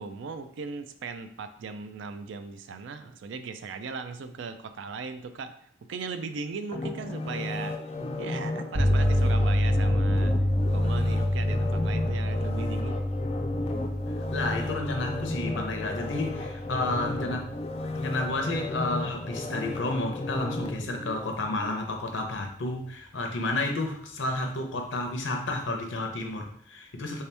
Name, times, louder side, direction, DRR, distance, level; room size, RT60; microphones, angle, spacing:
voice 1, 0.0-5.5 5.9-7.8 8.2-10.3 10.7-13.0, right 5 dB, 80° right, 9 dB, 0.4 m, -38 dB
sound 1, 6.7-21.8 22.2-22.3, left 2 dB, 35° left, 0.3 m, -34 dB
sound 2, 8.7-19.3, left 1 dB, 45° right, 0.7 m, -27 dB
voice 2, 14.3-17.5 17.9-27.2, left 2 dB, 85° left, 3 dB, 0.7 m, -31 dB
3.4 x 2.8 x 3.3 m, 0.64 s
head